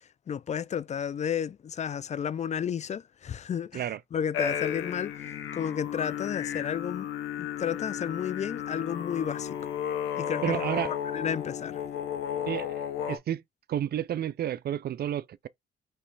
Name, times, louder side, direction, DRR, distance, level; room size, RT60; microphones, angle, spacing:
voice 1, 0.3-3.9 4.1-5.1 5.5-7.1 7.4-9.5 10.2-10.6 11.1-11.8, left 8 dB, 35° left, 0.4 m, -32 dB
sound 1, 4.3-13.2, left 9 dB, 80° left, 0.9 m, -33 dB
voice 2, 10.4-10.9 12.5-13.4 13.7-15.5, right 10 dB, 55° right, 0.5 m, -31 dB
5.4 x 3.0 x 3.3 m
cardioid pair, 90°, 20 cm